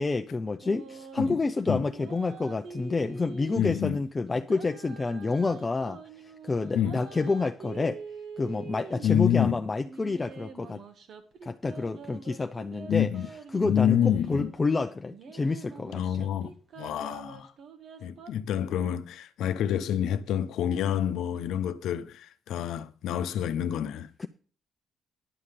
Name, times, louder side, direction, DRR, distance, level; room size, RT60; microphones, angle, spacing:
voice 1, 0.0-8.0 8.4-10.8 11.4-13.1 13.5-16.3 24.2-24.3, left 3 dB, 25° left, 0.6 m, -29 dB
sound 1, 0.6-1.5 1.9-3.9 4.4-9.3 9.8-14.6 15.1-18.3, right 5 dB, 65° right, 1.4 m, -45 dB
voice 2, 3.5-4.0 6.7-7.0 9.0-9.6 12.9-13.3 13.6-14.5 15.9-17.5 18.0-24.1, left 9 dB, 80° left, 0.8 m, -27 dB
11.0 x 5.7 x 6.8 m
cardioid pair, 90°, 0 cm